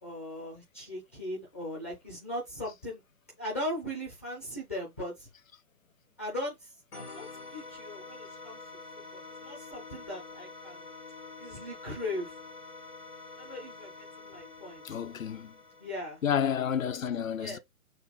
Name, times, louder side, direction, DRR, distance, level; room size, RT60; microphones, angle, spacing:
voice 1, 0.0-3.0 3.4-5.3 6.2-6.5 6.9-7.3 7.5-8.6 9.4-10.8 11.4-12.3 13.4-13.9 14.2-14.8 15.8-16.2 17.4-17.6, left 1 dB, 10° left, 0.5 m, -38 dB
sound 1, 6.9-16.4, left 3 dB, 85° left, 1.8 m, -47 dB
voice 2, 14.8-15.5 16.2-17.6, left 8 dB, 60° left, 0.7 m, -30 dB
6.3 x 2.2 x 3.2 m
figure-of-eight pair, 130°, 45 cm